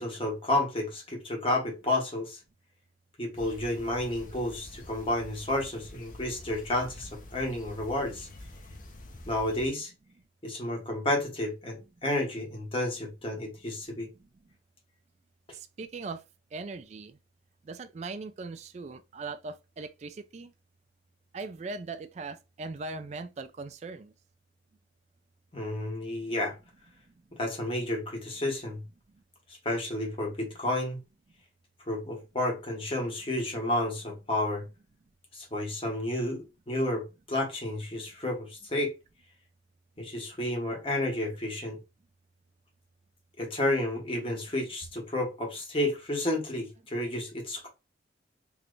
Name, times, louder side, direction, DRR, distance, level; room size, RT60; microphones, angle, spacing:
voice 1, 0.0-2.4 3.2-8.3 9.3-9.9 10.4-14.1 25.5-26.6 27.3-28.8 29.5-31.0 31.9-34.6 35.3-38.9 40.0-41.8 43.4-47.7, left 1 dB, 30° left, 1.2 m, -31 dB
sound 1, 3.3-9.7, left 1 dB, 45° left, 0.7 m, -47 dB
voice 2, 15.5-16.2 16.5-17.2 17.6-20.5 21.3-24.1, right 3 dB, 35° right, 0.3 m, -40 dB
3.2 x 2.9 x 2.4 m
head